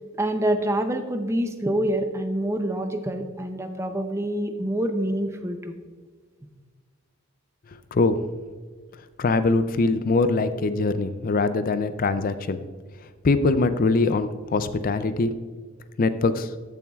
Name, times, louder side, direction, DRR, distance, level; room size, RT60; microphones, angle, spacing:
voice 1, 0.1-5.8, right 1 dB, 10° right, 6 dB, 0.5 m, -26 dB
voice 2, 7.9-8.2 9.2-12.6 13.2-15.3 16.0-16.5, left 3 dB, 40° left, 11 dB, 0.4 m, -22 dB
14.0 x 7.0 x 2.4 m, 1.5 s
head